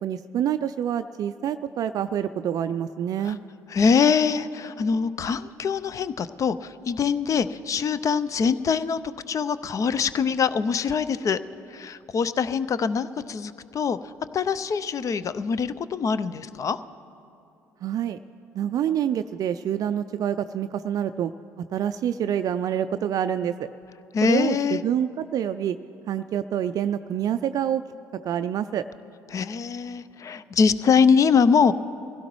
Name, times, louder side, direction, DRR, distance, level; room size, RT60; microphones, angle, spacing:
voice 1, 0.0-3.4 17.8-18.2 18.5-21.3 21.6-23.7 24.2-25.8 26.1-27.8 28.2-28.8, right 9 dB, 50° right, 10 dB, 0.3 m, -27 dB
voice 2, 3.7-9.0 9.3-11.4 11.7-16.8 24.1-24.8 29.3-31.7, left 6 dB, 40° left, 15 dB, 0.5 m, -23 dB
22.0 x 16.5 x 3.1 m, 2.7 s
hypercardioid pair, 55°, 8 cm